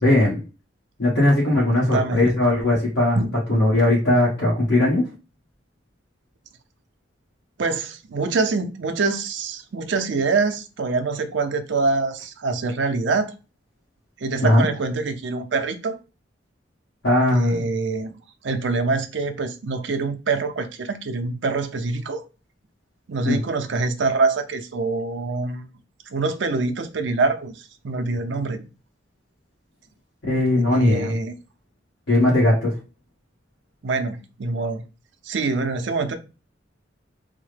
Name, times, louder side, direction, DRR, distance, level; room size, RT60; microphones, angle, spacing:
voice 1, 0.0-0.4 1.0-3.2 3.5-5.1 14.4-14.7 17.0-17.7 23.2-23.4 30.2-31.1 32.1-32.7, left 1 dB, 75° left, 1.4 m, -19 dB
voice 2, 1.7-2.3 3.1-3.3 7.6-13.3 14.2-16.0 17.3-18.1 18.4-22.2 23.1-25.7 26.1-28.6 30.7-31.3 33.8-34.8 35.2-36.1, right 3 dB, 65° right, 0.5 m, -25 dB
3.5 x 2.1 x 3.2 m
head